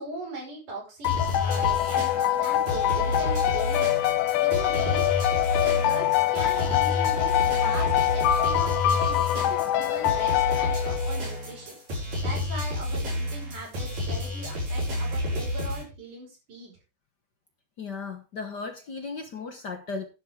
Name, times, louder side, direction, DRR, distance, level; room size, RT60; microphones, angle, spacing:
voice 1, 0.0-3.9 4.4-5.1 5.6-11.8 12.2-16.8, right 2 dB, 80° right, -1 dB, 7.0 m, -40 dB
sound 1, 1.0-11.4, left 13 dB, 80° left, 2.2 m, -25 dB
sound 2, 1.0-15.8, left 2 dB, 60° right, 6.6 m, -30 dB
voice 2, 17.8-20.1, left 4 dB, 60° left, 5 dB, 1.1 m, -36 dB
12.0 x 11.0 x 3.7 m, 0.30 s
omnidirectional pair, 3.6 m